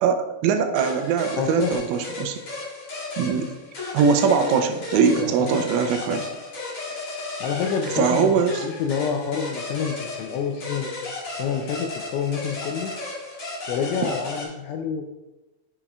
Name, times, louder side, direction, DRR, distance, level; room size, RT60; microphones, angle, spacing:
voice 1, 0.0-2.4 3.2-3.5 3.9-6.3 8.0-8.6, right 6 dB, 85° right, 7 dB, 3.1 m, -21 dB
sound 1, 0.7-14.5, left 3 dB, 35° left, 2.7 m, -34 dB
voice 2, 1.4-1.8 5.2-5.6 6.1-6.2 7.4-11.0 11.3-12.9 13.7-15.0, left 7 dB, 85° left, 2 dB, 2.6 m, -28 dB
8.6 x 6.7 x 2.4 m, 1.0 s
omnidirectional pair, 5.8 m